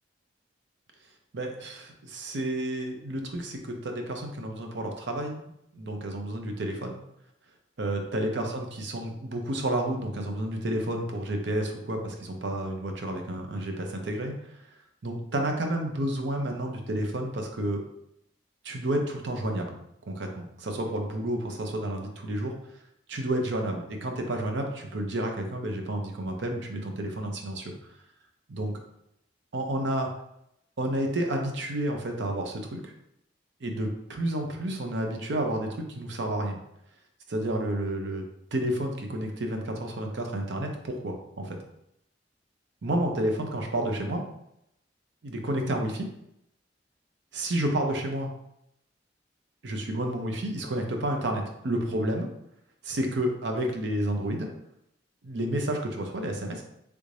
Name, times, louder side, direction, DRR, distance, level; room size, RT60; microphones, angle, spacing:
voice 1, 1.3-5.4 5.7-7.0 7.8-14.4 15.0-17.8 18.6-19.7 20.1-22.5 23.1-27.7 28.5-28.7 29.5-30.1 30.8-32.9 33.6-36.6 37.3-38.2 38.5-41.6 42.8-44.2 45.2-46.1 47.3-48.3 49.6-52.3 52.8-54.5 55.2-56.6, right 1 dB, 70° right, 3 dB, 0.6 m, -30 dB
3.3 x 2.6 x 3.2 m, 0.78 s
head